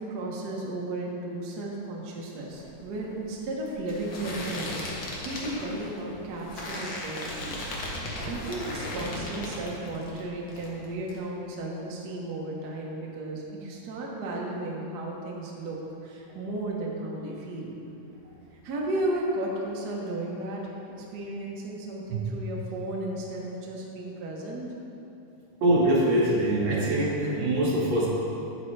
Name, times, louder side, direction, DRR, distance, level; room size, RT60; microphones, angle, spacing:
voice 1, 0.0-7.6 8.2-17.8 18.6-24.7, right 2 dB, 85° right, -2 dB, 0.8 m, -34 dB
sound 1, 2.5-10.2 10.5-11.2, left 1 dB, 55° left, 1.5 m, -36 dB
voice 2, 25.6-28.1, right 1 dB, 60° right, -5 dB, 2.7 m, -23 dB
9.8 x 8.6 x 3.3 m, 2.9 s
omnidirectional pair, 3.6 m